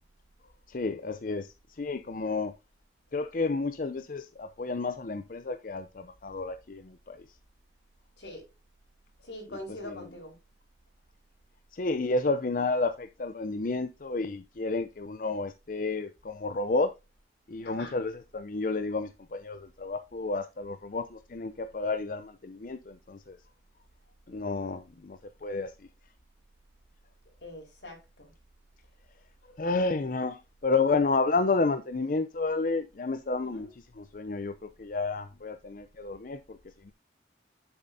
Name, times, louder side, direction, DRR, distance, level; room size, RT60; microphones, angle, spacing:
voice 1, 0.7-1.5 1.8-2.5 3.1-7.2 9.8-10.1 11.7-16.9 17.5-23.4 24.3-25.7 29.6-33.7 34.0-36.6 36.9-37.0, left 3 dB, 50° left, 0.6 m, -31 dB
voice 2, 9.2-10.3 17.6-17.9 27.4-28.3 33.5-33.7, left 1 dB, 85° left, 4.5 m, -43 dB
9.7 x 8.0 x 2.7 m
head